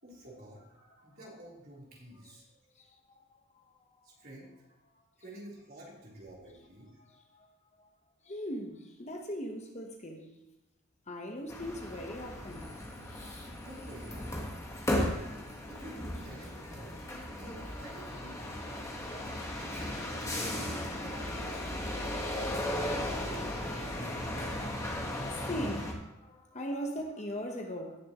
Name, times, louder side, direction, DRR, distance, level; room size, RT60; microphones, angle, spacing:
voice 1, 0.0-2.4 4.0-4.7 5.2-6.9 13.5-14.4 15.7-16.9 17.4-18.8 19.6-19.9 20.4-22.0, right 1 dB, 45° right, 3.6 m, -49 dB
voice 2, 2.7-4.1 7.0-7.5 7.8-7.9 8.2-10.4 11.1-12.8 18.8-21.1 25.3-28.0, equal, 30° left, 1.0 m, -41 dB
sound 1, 11.5-25.9, left 1 dB, 15° left, 1.4 m, -36 dB
17.0 x 7.0 x 3.0 m
head